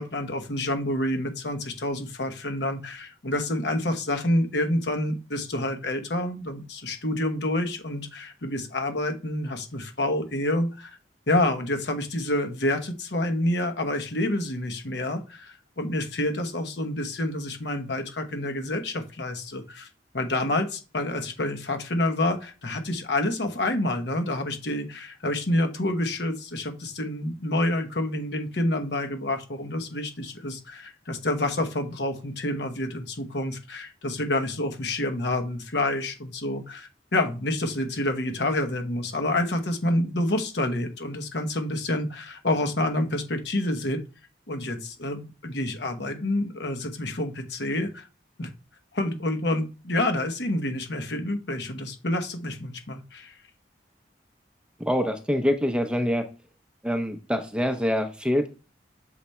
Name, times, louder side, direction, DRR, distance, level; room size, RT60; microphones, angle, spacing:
voice 1, 0.0-11.0 11.3-19.9 20.1-44.0 44.5-48.1 48.4-48.5 48.9-53.4, left 1 dB, 70° left, 6 dB, 1.1 m, -28 dB
voice 2, 54.8-56.3 56.8-58.5, equal, 5° right, 6 dB, 0.6 m, -25 dB
6.9 x 3.4 x 4.3 m, 0.31 s
head